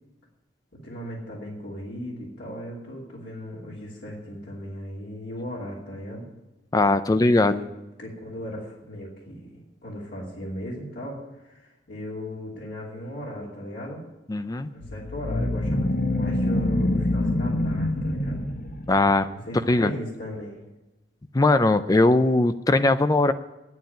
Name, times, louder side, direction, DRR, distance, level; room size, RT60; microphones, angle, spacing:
voice 1, 0.7-6.3 7.1-7.7 8.0-14.0 14.7-18.4 19.3-20.7, equal, 70° left, -5 dB, 2.8 m, -37 dB
voice 2, 6.7-7.6 14.3-14.7 18.9-19.3 19.7-19.9 21.3-23.3, left 2 dB, 20° left, 12 dB, 0.4 m, -20 dB
sound 1, 14.8-19.2, left 1 dB, 50° left, 1.0 m, -26 dB
9.5 x 9.0 x 8.9 m, 1.0 s
head